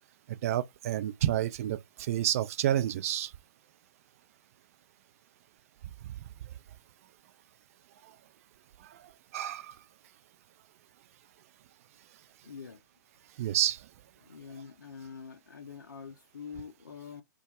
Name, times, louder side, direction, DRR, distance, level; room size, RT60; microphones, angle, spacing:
voice 1, 0.3-3.3 9.3-9.8 13.4-13.8, right 12 dB, 45° right, 0.4 m, -29 dB
voice 2, 12.4-12.8 14.2-17.2, left 6 dB, 70° left, 0.5 m, -45 dB
2.3 x 2.1 x 2.7 m
figure-of-eight pair, 110°, 10 cm